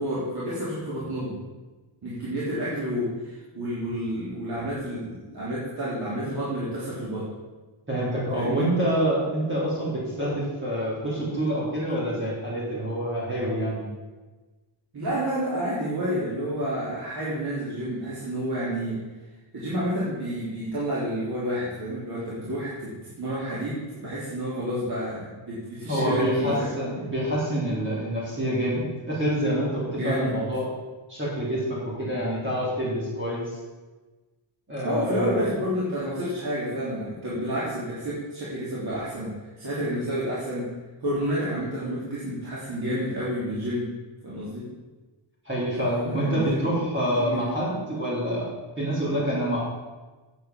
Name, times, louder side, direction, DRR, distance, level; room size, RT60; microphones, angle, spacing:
voice 1, 0.0-1.3 2.0-7.3 8.3-8.6 14.9-19.0 19.5-26.7 29.9-30.4 34.8-39.3 39.6-40.7 41.0-43.9 44.2-44.7 45.8-46.6 47.1-47.5, equal, 50° right, -8 dB, 3.3 m, -30 dB
voice 2, 7.9-13.9 25.9-30.7 31.1-33.4 34.7-35.4 45.5-48.5 48.8-49.6, equal, 25° right, -7 dB, 3.5 m, -27 dB
9.0 x 8.3 x 7.5 m, 1.3 s
wide cardioid pair, 155°, 49 cm